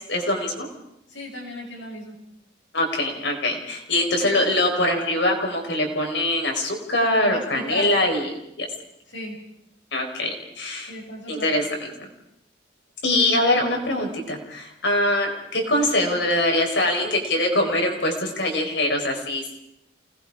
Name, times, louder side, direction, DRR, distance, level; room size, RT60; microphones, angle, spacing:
voice 1, 0.1-0.7 2.7-8.3 8.6-8.7 9.9-10.9 11.3-11.9 13.0-19.6, left 1 dB, 75° left, 2 dB, 4.7 m, -23 dB
voice 2, 1.1-2.2 4.2-4.4 7.3-7.9 9.1-9.4 10.9-11.6, left 1 dB, 90° left, -1 dB, 7.1 m, -35 dB
29.0 x 19.5 x 4.9 m, 0.80 s
head